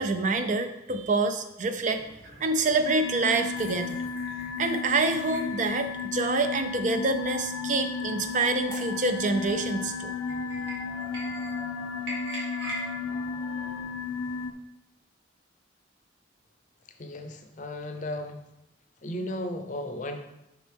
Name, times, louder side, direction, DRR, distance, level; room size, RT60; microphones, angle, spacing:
voice 1, 0.0-2.0 2.4-4.0 4.6-10.1, right 3 dB, 40° right, 8 dB, 0.4 m, -27 dB
sound 1, 1.9-14.5, right 1 dB, 70° right, 2.0 m, -44 dB
sound 2, 2.9-14.5, left 5 dB, 90° left, 0.4 m, -34 dB
sound 3, 6.8-13.8, equal, 15° right, 1.3 m, -45 dB
voice 2, 17.0-18.4 19.0-20.3, left 1 dB, 40° left, 6 dB, 0.6 m, -35 dB
6.3 x 5.2 x 3.4 m, 0.89 s
head